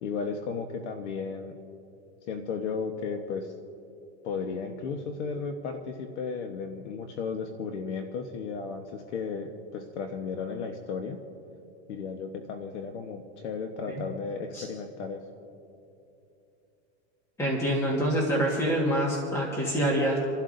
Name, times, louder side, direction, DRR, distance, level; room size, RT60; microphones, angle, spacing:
voice 1, 0.0-1.5 2.3-3.5 4.2-11.2 11.9-15.2, left 5 dB, 80° left, 5 dB, 1.2 m, -34 dB
voice 2, 17.4-20.2, equal, 10° left, -2 dB, 1.5 m, -26 dB
29.0 x 11.5 x 2.6 m, 2.7 s
supercardioid pair, 155°, 34 cm